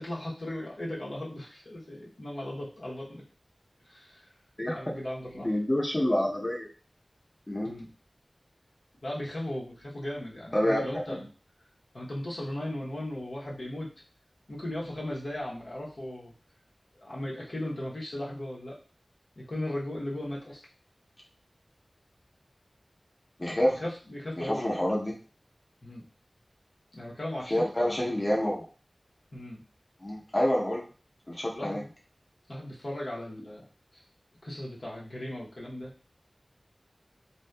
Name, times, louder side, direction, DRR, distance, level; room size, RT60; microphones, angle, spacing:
voice 1, 0.0-3.2 3.8-4.3 4.7-5.5 7.6-7.9 9.0-11.2 11.9-13.9 14.5-16.3 17.0-18.8 19.4-20.6 23.6-24.6 25.8-26.0 26.9-28.2 29.3-29.6 31.5-31.9 32.5-33.7 33.9-34.0 34.4-35.9, left 1 dB, 75° left, -5 dB, 0.8 m, -37 dB
voice 2, 4.6-4.9 5.4-6.7 7.5-7.8 10.5-11.2 23.4-23.8 24.4-25.1 27.5-28.6 30.0-30.8 31.3-31.8, left 1 dB, 35° left, -3 dB, 0.7 m, -28 dB
2.7 x 2.2 x 2.2 m, 0.36 s
wide cardioid pair, 60°, 0 cm